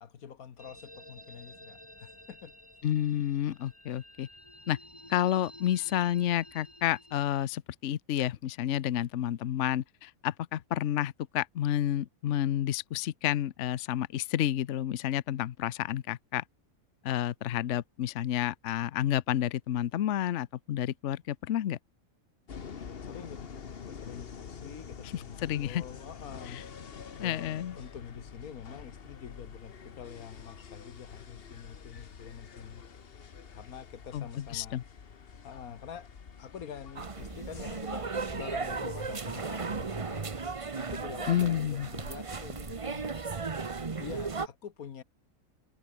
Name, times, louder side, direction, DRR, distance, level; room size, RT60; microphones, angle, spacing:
voice 1, 0.0-2.5 23.0-26.6 27.2-32.9 33.5-34.8 35.4-36.1 36.4-40.3 40.8-43.2 44.0-45.0, left 8 dB, 90° left, 1.7 m, -46 dB
sound 1, 0.6-7.4, left 1 dB, 20° left, 6.9 m, -52 dB
voice 2, 2.8-4.3 4.7-4.8 5.1-16.4 17.0-21.8 25.1-25.8 26.5-26.6 27.2-27.8 34.1-34.8 41.3-41.9, left 11 dB, 60° left, 1.0 m, -30 dB
sound 2, 22.5-40.6, left 6 dB, 45° left, 1.3 m, -47 dB
sound 3, 37.0-44.5, right 4 dB, 25° right, 0.9 m, -36 dB
omnidirectional pair, 1.5 m